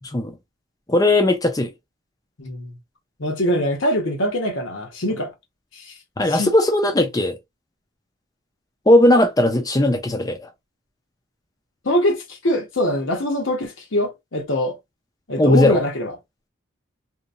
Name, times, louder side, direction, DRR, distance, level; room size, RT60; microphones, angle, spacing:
voice 1, 0.9-1.7 6.2-7.4 8.9-10.5 15.4-15.8, left 1 dB, 20° left, 0.5 m, -17 dB
voice 2, 2.4-2.8 3.2-5.3 5.7-5.9 6.3-6.5 11.8-14.8 15.3-16.1, equal, 75° left, 0.9 m, -23 dB
2.8 x 2.2 x 2.5 m
head